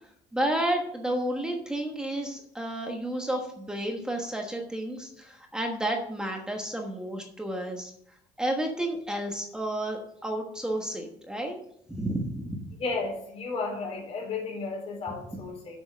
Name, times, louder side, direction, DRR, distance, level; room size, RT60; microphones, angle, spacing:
voice 1, 0.3-7.9 8.4-11.6 11.9-12.7, right 1 dB, 5° right, 2 dB, 1.3 m, -31 dB
voice 2, 12.8-15.8, left 4 dB, 45° left, -2 dB, 4.0 m, -33 dB
7.9 x 6.3 x 7.3 m, 0.69 s
cardioid pair, 165°, 14 cm